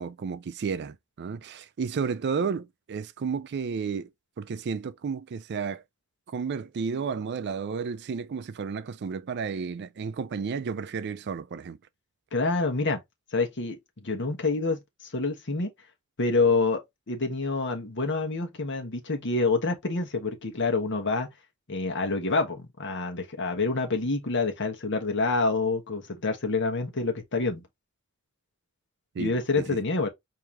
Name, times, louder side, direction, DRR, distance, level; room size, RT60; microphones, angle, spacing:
voice 1, 0.0-4.1 4.4-5.8 6.3-11.8 29.1-29.8, right 5 dB, 55° right, 0.4 m, -32 dB
voice 2, 12.3-13.0 13.3-14.8 15.1-15.7 16.2-21.3 21.7-27.6 29.2-30.1, left 3 dB, 55° left, 1.2 m, -27 dB
4.6 x 2.8 x 3.4 m
head